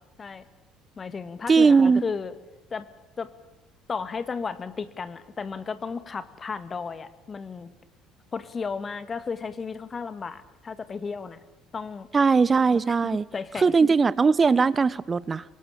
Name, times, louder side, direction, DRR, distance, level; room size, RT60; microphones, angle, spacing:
voice 1, 1.0-2.3 2.7-2.9 3.2-3.3 3.9-7.7 8.3-11.4 11.7-12.1 13.0-13.7, left 5 dB, 30° left, 12 dB, 1.9 m, -34 dB
voice 2, 1.5-2.0 12.1-13.2 13.6-15.4, right 5 dB, 30° right, 21 dB, 1.0 m, -19 dB
24.5 x 23.5 x 8.6 m, 1.0 s
figure-of-eight pair, 55°, 0 cm